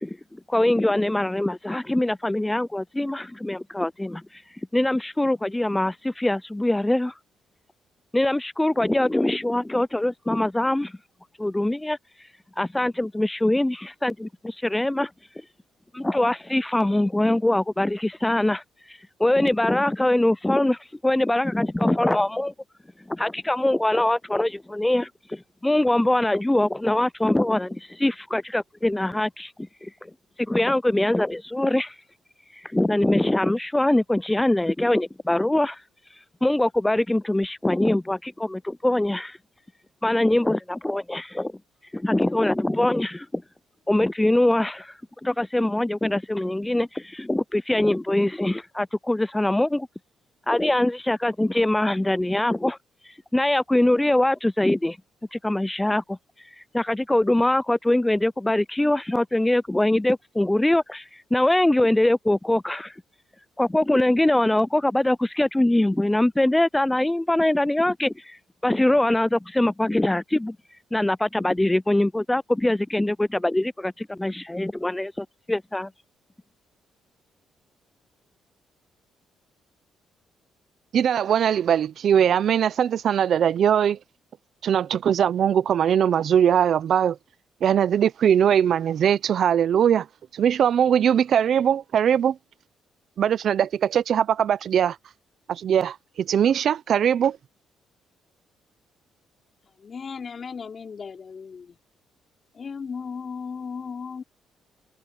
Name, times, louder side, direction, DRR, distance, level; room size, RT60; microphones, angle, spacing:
voice 1, 0.0-4.2 4.7-7.1 8.1-10.9 11.4-12.0 12.6-15.1 15.9-18.6 19.2-22.5 23.1-30.1 30.4-31.9 32.7-35.8 36.4-39.4 40.0-41.5 41.9-43.4 43.9-44.9 45.2-49.9 50.5-52.8 53.3-55.0 55.3-56.2 56.7-62.9 63.6-68.4 68.6-70.6 70.9-75.9, left 1 dB, 10° left, 0.4 m, -23 dB
voice 2, 80.9-84.0 84.6-87.2 87.6-90.1 90.3-92.4 93.2-95.0 95.5-97.4, right 9 dB, 60° right, 0.7 m, -21 dB
voice 3, 99.8-101.8 102.5-104.2, left 5 dB, 45° left, 4.5 m, -36 dB
cardioid pair, 90°, 0 cm